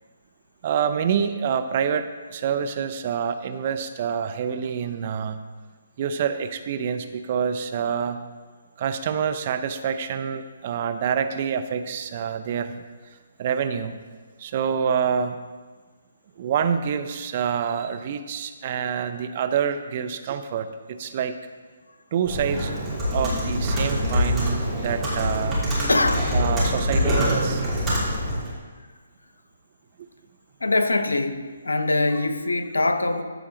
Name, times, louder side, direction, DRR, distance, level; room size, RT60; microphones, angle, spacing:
voice 1, 0.6-5.4 6.0-8.2 8.8-12.8 13.4-14.0 14.4-15.4 16.4-21.4 22.1-22.8 23.1-25.6 26.3-27.7 30.0-30.1 32.1-32.3, right 7 dB, 40° right, 9 dB, 0.6 m, -27 dB
Computer keyboard, 22.3-28.5, equal, 10° right, 3.0 m, -24 dB
voice 2, 25.9-26.3 30.6-31.4 31.6-33.2, left 2 dB, 85° left, 8 dB, 0.8 m, -22 dB
14.0 x 4.8 x 3.9 m, 1.5 s
figure-of-eight pair, 140°, 0 cm